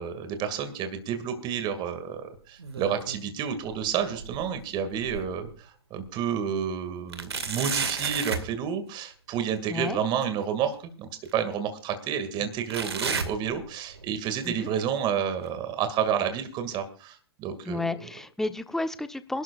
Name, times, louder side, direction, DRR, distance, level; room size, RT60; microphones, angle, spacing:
voice 1, 0.0-17.9, right 8 dB, 35° right, 8 dB, 2.3 m, -30 dB
sound 1, 2.3-3.3 3.6-5.5 6.0-6.1 7.1-8.5 10.2-10.3 11.2-11.3 12.7-14.1 14.4-14.8 15.5-15.6 16.4-16.5, right 5 dB, 80° right, 2.1 m, -33 dB
voice 2, 9.7-10.0 14.4-14.7 17.6-19.4, left 2 dB, 5° left, 10 dB, 1.0 m, -31 dB
26.0 x 12.5 x 2.5 m, 0.40 s
hypercardioid pair, 105°, 13 cm